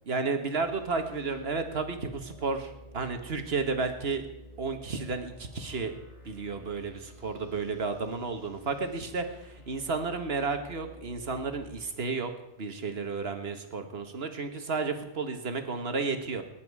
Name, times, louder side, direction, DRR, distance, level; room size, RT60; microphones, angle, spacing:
voice 1, 0.1-4.3 4.6-5.9 6.2-12.3 12.6-16.4, right 4 dB, 60° right, 7 dB, 1.6 m, -32 dB
sound 1, 0.6-11.8, left 1 dB, 70° left, 4.6 m, -51 dB
19.5 x 10.5 x 4.8 m, 0.87 s
omnidirectional pair, 1.2 m